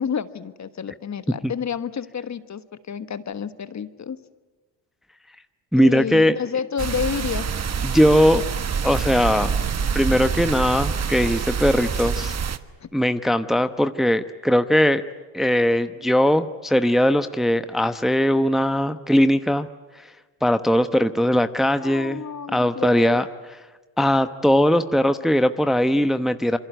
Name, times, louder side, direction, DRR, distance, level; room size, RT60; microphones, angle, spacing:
voice 1, 0.0-4.2 5.8-7.5 12.8-12.9 21.8-23.2, left 7 dB, 35° left, 12 dB, 1.5 m, -30 dB
voice 2, 5.7-6.4 7.8-8.4 8.8-9.5 9.9-12.3 12.9-15.0 15.3-19.7 20.4-22.2 22.5-23.3 24.0-26.6, equal, ahead, 10 dB, 1.0 m, -19 dB
sound 1, 6.8-12.6, right 6 dB, 35° right, 1.4 m, -26 dB
27.0 x 24.0 x 9.2 m, 1.2 s
hypercardioid pair, 65°, 47 cm